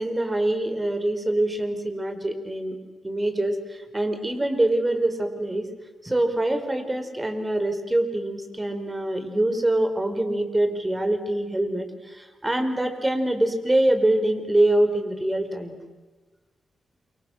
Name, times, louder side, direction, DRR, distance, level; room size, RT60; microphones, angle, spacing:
voice 1, 0.0-2.7 3.0-3.6 3.9-5.7 6.0-11.9 12.4-15.7, right 1 dB, 20° right, 7 dB, 4.7 m, -24 dB
28.0 x 25.5 x 6.5 m, 1.3 s
supercardioid pair, 50°, 0 cm